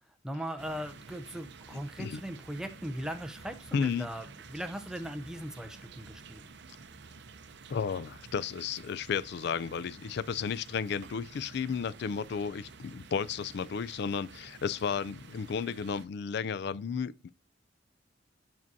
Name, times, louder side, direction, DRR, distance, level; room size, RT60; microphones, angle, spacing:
voice 1, 0.2-6.5, equal, 5° right, 0.6 m, -39 dB
sound 1, 0.6-16.1, right 4 dB, 60° right, 0.6 m, -51 dB
voice 2, 3.7-4.1 7.7-17.3, left 6 dB, 60° left, 0.3 m, -33 dB
7.3 x 6.0 x 2.7 m
head